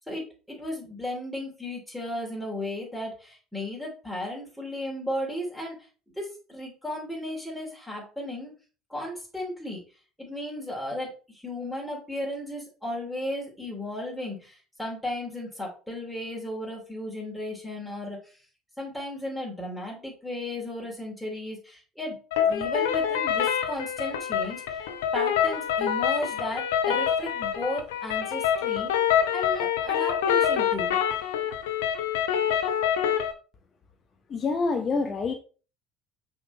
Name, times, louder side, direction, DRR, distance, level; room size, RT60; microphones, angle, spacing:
voice 1, 0.1-5.8 6.1-8.5 8.9-9.8 10.2-18.2 18.8-22.2 22.5-24.8 25.1-28.9 29.3-31.0, left 1 dB, ahead, -3 dB, 2.9 m, -35 dB
sound 1, 22.3-33.3, left 9 dB, 75° left, 0.7 m, -26 dB
voice 2, 34.3-35.3, left 4 dB, 40° left, 4 dB, 0.9 m, -26 dB
5.9 x 3.7 x 4.2 m, 0.36 s
figure-of-eight pair, 60°, 0 cm